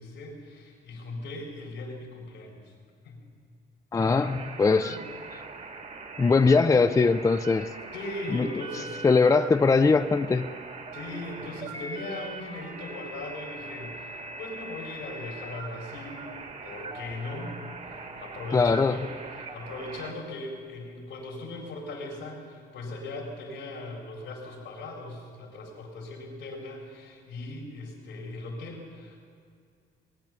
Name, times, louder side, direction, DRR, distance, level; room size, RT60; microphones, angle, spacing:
voice 1, 0.0-2.7 3.0-3.3 3.9-4.4 4.8-5.0 7.9-9.3 10.9-16.2 16.6-29.2, left 2 dB, 85° left, -1 dB, 4.4 m, -39 dB
voice 2, 3.9-5.0 6.2-7.7 8.3-8.5 9.0-10.5 18.5-19.0, left 4 dB, 15° left, 10 dB, 0.4 m, -21 dB
sound 1, 4.0-20.1, right 3 dB, 45° right, 1.7 m, -41 dB
20.5 x 9.4 x 7.5 m, 2.2 s
cardioid pair, 100°, 19 cm